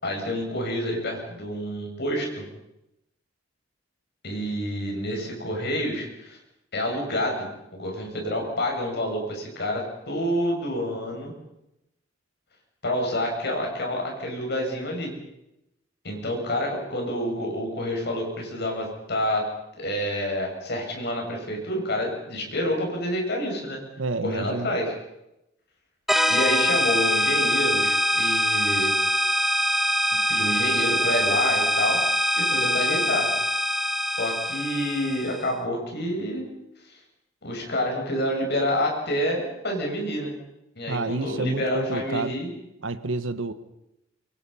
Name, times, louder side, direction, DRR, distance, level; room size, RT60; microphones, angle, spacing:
voice 1, 0.0-2.4 4.2-6.4 6.7-11.3 12.8-15.1 16.0-19.5 19.8-23.8 24.2-24.9 26.3-28.9 30.3-33.3 34.1-36.5 37.4-40.3 40.8-42.5, equal, 60° left, 1 dB, 7.1 m, -28 dB
voice 2, 24.0-24.7 40.9-42.3 42.8-43.5, right 3 dB, 75° right, 12 dB, 1.3 m, -29 dB
sound 1, 26.1-35.5, equal, ahead, 1.3 m, -23 dB
25.5 x 23.0 x 5.7 m, 0.88 s
head